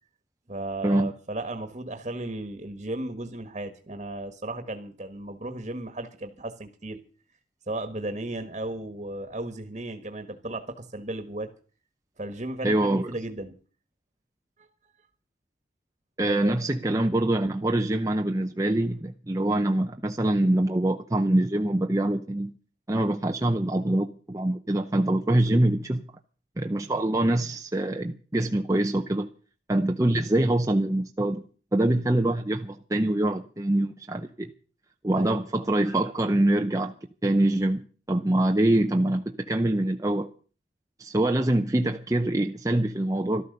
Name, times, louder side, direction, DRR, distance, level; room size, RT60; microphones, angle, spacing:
voice 1, 0.5-7.0 7.7-11.5 12.2-13.5 14.6-14.7 16.2-16.6 35.1-35.4, right 2 dB, 35° right, 1.5 m, -35 dB
voice 2, 12.6-13.1 16.2-22.5 22.9-26.0 26.6-29.3 29.7-34.5 35.0-36.9 37.2-40.3 41.0-43.4, right 1 dB, 15° right, 0.6 m, -24 dB
13.5 x 13.0 x 6.6 m
head